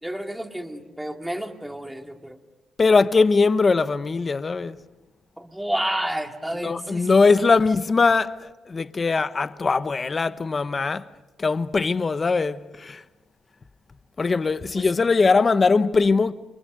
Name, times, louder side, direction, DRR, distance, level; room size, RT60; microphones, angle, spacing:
voice 1, 0.0-2.4 5.4-7.5 14.7-14.9, right 1 dB, 5° right, 2.3 m, -30 dB
voice 2, 2.8-4.8 6.6-11.1 11.4-13.0 14.2-16.3, left 4 dB, 35° left, 1.0 m, -21 dB
29.0 x 24.0 x 6.6 m
cardioid pair, 90°, 0 cm